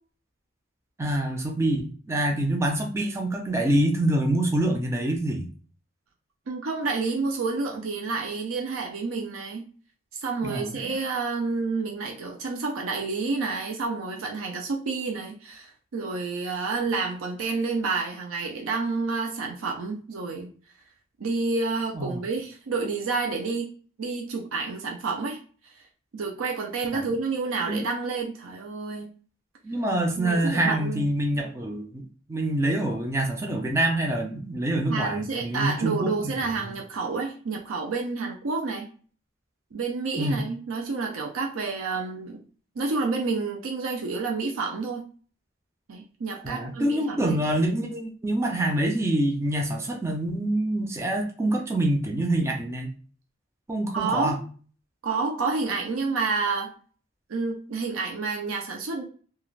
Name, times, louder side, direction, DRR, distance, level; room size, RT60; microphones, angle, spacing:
voice 1, 1.0-5.5 10.4-10.9 21.9-22.2 26.9-27.1 27.7-27.9 29.6-32.0 32.3-36.1 40.2-40.4 46.4-52.9 53.7-54.4, right 1 dB, 15° right, 1 dB, 0.4 m, -26 dB
voice 2, 6.5-9.6 10.1-20.5 21.2-23.7 24.0-25.8 26.1-29.1 30.2-31.1 34.9-38.9 39.7-42.4 42.8-45.0 45.9-47.4 53.9-54.4 55.0-56.7 57.3-59.0, right 4 dB, 80° right, 1 dB, 0.5 m, -29 dB
2.4 x 2.3 x 3.1 m, 0.42 s
head